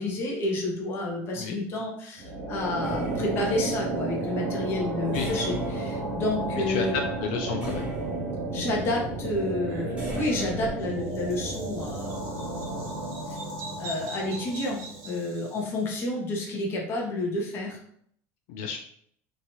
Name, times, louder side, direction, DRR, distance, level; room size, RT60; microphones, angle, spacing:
voice 1, 0.0-7.0 8.5-13.0 13.3-13.4 13.8-17.8, left 2 dB, 35° left, 0 dB, 0.7 m, -30 dB
sound 1, 2.2-15.3, right 2 dB, 85° right, 1.3 m, -33 dB
sound 2, 2.8-4.1 5.1-6.8 7.6-8.7 10.0-10.8, right 1 dB, 15° right, 0.9 m, -38 dB
voice 2, 6.7-8.0 18.5-18.8, left 5 dB, 75° left, 4 dB, 0.4 m, -31 dB
Bird vocalization bird call bird song, 9.6-15.9, right 2 dB, 50° right, 0.6 m, -43 dB
3.0 x 2.3 x 2.7 m, 0.64 s
cardioid pair, 165°, 7 cm